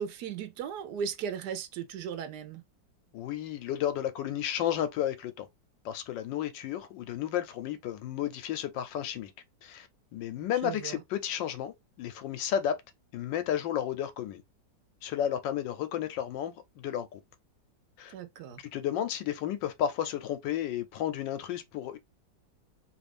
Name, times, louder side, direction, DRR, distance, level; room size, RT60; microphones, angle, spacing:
voice 1, 0.0-2.6 10.6-11.0 18.1-18.6, right 7 dB, 70° right, 1.1 m, -36 dB
voice 2, 3.1-5.5 5.8-9.3 9.6-9.9 10.1-12.7 13.1-14.4 15.0-17.2 18.0-18.1 18.7-22.0, left 10 dB, 80° left, 1.3 m, -32 dB
3.1 x 2.5 x 3.2 m
omnidirectional pair, 2.0 m